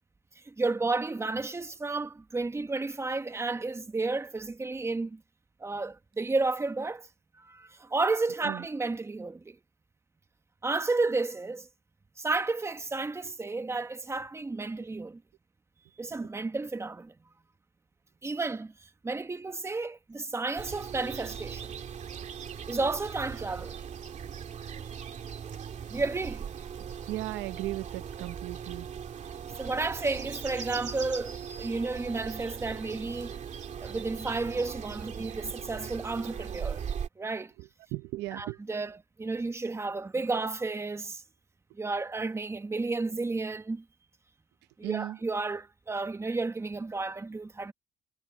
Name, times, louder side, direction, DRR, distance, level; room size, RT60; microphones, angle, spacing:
voice 1, 0.3-5.2 5.6-7.1 7.4-9.6 10.6-11.7 12.2-15.2 16.0-17.1 18.2-21.7 22.7-23.8 25.9-26.5 29.6-33.4 33.8-36.8 37.2-37.5 38.3-41.2 41.7-43.8 44.8-47.7, right 3 dB, 15° right, 1.3 m, -32 dB
sound 1, 20.6-37.1, right 7 dB, 45° right, 2.3 m, -39 dB
voice 2, 27.1-28.9 37.6-38.6 44.8-45.2, right 17 dB, 85° right, 0.8 m, -36 dB
cardioid pair, 110°, 17 cm